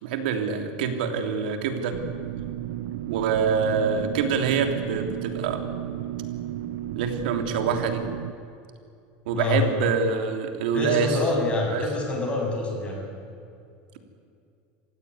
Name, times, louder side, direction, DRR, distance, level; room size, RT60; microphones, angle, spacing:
voice 1, 0.0-2.0 3.1-5.7 6.9-8.0 9.2-11.2 11.7-11.9, right 6 dB, 90° right, 6 dB, 3.2 m, -25 dB
sound 1, 1.9-8.3, right 12 dB, 65° right, 1.0 m, -33 dB
voice 2, 9.3-9.6 10.7-13.0, left 2 dB, 20° left, 0 dB, 7.3 m, -26 dB
27.5 x 16.5 x 9.7 m, 2.4 s
supercardioid pair, 150°, 5 cm